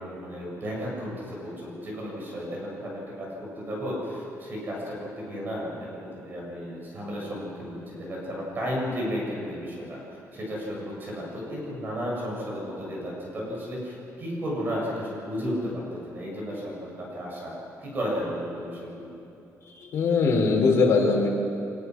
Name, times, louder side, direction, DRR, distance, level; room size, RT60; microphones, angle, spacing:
voice 1, 0.0-10.0 10.3-17.5 17.8-19.1, equal, 35° right, -3 dB, 7.5 m, -33 dB
voice 2, 19.7-21.3, left 4 dB, 50° left, -1 dB, 4.6 m, -21 dB
25.0 x 21.0 x 6.3 m, 2.8 s
cardioid pair, 150°, 6 cm